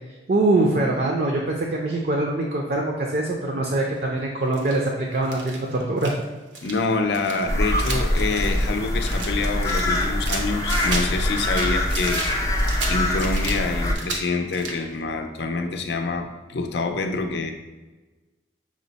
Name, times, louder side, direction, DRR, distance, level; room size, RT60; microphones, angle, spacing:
voice 1, 0.3-6.1, right 2 dB, 55° right, 0 dB, 0.5 m, -23 dB
sound 1, 4.5-4.8 5.2-6.2 6.5-6.8 7.1-9.3 9.6-11.1 11.4-13.6 13.9-14.2 14.5-14.9, right 3 dB, 90° right, 0.7 m, -33 dB
voice 2, 6.6-12.2 12.9-17.5, left 3 dB, 70° left, 6 dB, 0.5 m, -26 dB
sound 2, 7.5-13.9, left 1 dB, 15° left, 0.4 m, -24 dB
6.1 x 2.1 x 3.9 m, 1.2 s
head